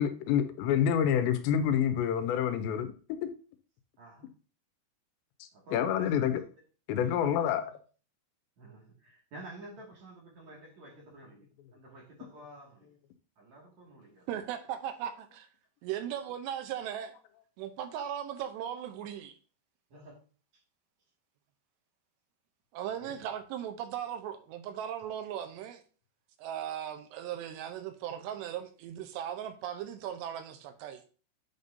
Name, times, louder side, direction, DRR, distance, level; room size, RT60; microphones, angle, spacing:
voice 1, 0.0-3.2 5.4-6.4 6.9-7.7, left 9 dB, 85° left, 2.9 m, -28 dB
voice 2, 4.0-4.3 5.5-6.3 7.0-7.4 8.6-13.0 13.4-14.3 19.9-20.2 23.0-23.1, right 2 dB, 50° right, 3.0 m, -50 dB
voice 3, 14.3-15.5 15.8-17.1 17.6-19.4 22.7-25.8 26.4-31.0, right 10 dB, 85° right, 2.8 m, -38 dB
9.3 x 5.3 x 2.7 m
omnidirectional pair, 5.0 m